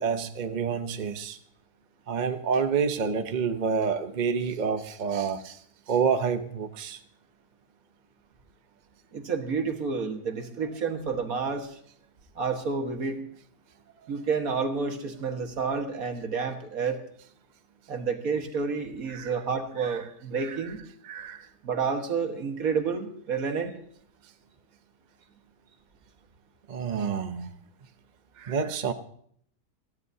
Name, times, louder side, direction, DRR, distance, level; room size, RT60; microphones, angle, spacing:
voice 1, 0.0-1.4 2.1-5.6 5.9-7.0 19.1-19.3 19.8-20.0 20.4-20.7 21.0-21.5 26.7-27.5 28.4-28.9, right 6 dB, 40° right, 8 dB, 0.7 m, -28 dB
voice 2, 9.1-11.8 12.4-13.2 14.1-17.0 17.9-20.8 21.6-23.7, right 5 dB, 65° right, 5 dB, 1.9 m, -30 dB
28.0 x 11.0 x 2.8 m, 0.62 s
omnidirectional pair, 1.7 m